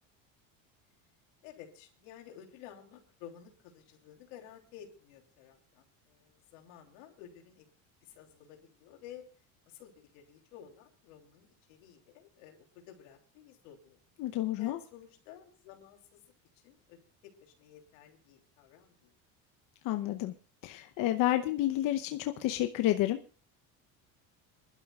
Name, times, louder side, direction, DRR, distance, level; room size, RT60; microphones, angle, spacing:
voice 1, 1.4-7.7 8.0-9.2 9.6-14.0 14.6-19.1, left 10 dB, 90° left, 2 dB, 3.3 m, -53 dB
voice 2, 14.2-14.8 19.8-20.3 20.6-23.2, left 14 dB, 60° left, 7 dB, 0.9 m, -30 dB
25.5 x 11.5 x 2.4 m, 0.37 s
supercardioid pair, 115°, 37 cm